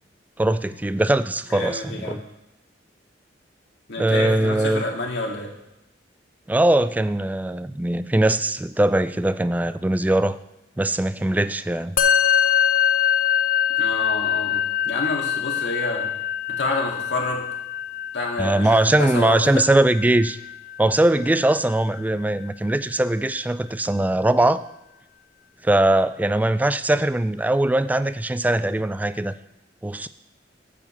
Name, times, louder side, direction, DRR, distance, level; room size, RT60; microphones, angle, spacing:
voice 1, 0.4-2.2 4.0-4.9 6.5-10.4 10.8-12.0 18.4-20.4 20.8-24.6 25.6-29.3 29.8-30.1, right 1 dB, 10° right, 13 dB, 0.3 m, -21 dB
voice 2, 1.5-2.2 3.9-5.5 13.8-14.6 14.8-16.1 16.5-17.4 18.1-19.6, left 2 dB, 70° left, 0 dB, 2.0 m, -28 dB
Musical instrument, 12.0-21.5, left 9 dB, 45° left, 0.6 m, -24 dB
9.2 x 5.0 x 7.0 m, 0.91 s
head